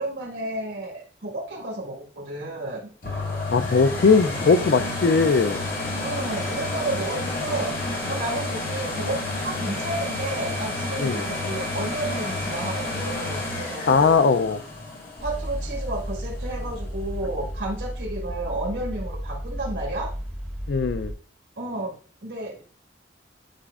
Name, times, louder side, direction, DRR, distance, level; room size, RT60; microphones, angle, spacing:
voice 1, 0.0-2.9 6.0-14.2 15.2-20.1 21.6-22.0 22.2-22.6, right 2 dB, 85° right, 1.8 m, -32 dB
sound 1, 3.0-16.7 17.2-17.3, left 2 dB, 50° left, 1.8 m, -30 dB
voice 2, 3.5-5.7 11.0-11.3 13.9-14.6 20.7-21.1, left 4 dB, 65° left, 0.4 m, -19 dB
sound 2, 15.2-21.1, equal, 5° left, 2.3 m, -33 dB
10.0 x 5.1 x 2.4 m
head